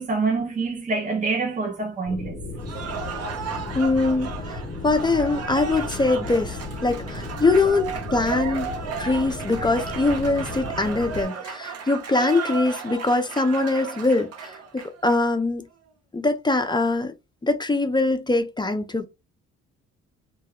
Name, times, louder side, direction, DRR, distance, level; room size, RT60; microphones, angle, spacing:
voice 1, 0.0-2.4, right 4 dB, 25° right, 0.7 m, -26 dB
sound 1, 2.1-11.2, left 3 dB, 40° left, 1.1 m, -35 dB
Cheering / Applause, 2.6-15.2, right 6 dB, 55° right, 0.8 m, -34 dB
voice 2, 3.7-4.6 4.8-14.5 14.8-15.7 16.1-17.1 17.4-19.1, left 3 dB, 15° left, 0.4 m, -23 dB
2.3 x 2.1 x 3.5 m
cardioid pair, 90°, 30 cm